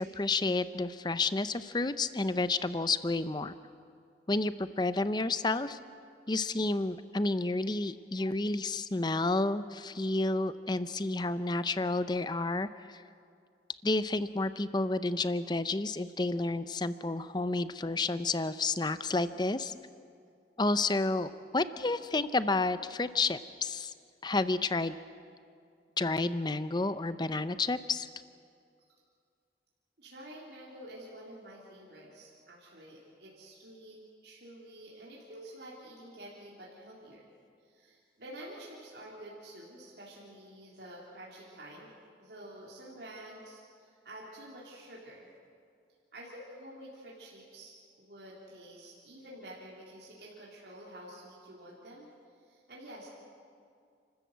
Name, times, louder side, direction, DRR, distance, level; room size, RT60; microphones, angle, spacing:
voice 1, 0.0-3.5 4.3-5.8 6.3-13.0 13.8-19.7 20.6-23.9 24.2-25.0 26.0-28.1, left 2 dB, 25° left, 13 dB, 0.6 m, -30 dB
voice 2, 30.0-34.0 34.2-37.3 37.6-41.9 42.2-45.3 46.1-52.1 52.4-53.1, right 1 dB, 70° right, -4 dB, 3.7 m, -49 dB
30.0 x 13.5 x 8.1 m, 2.3 s
head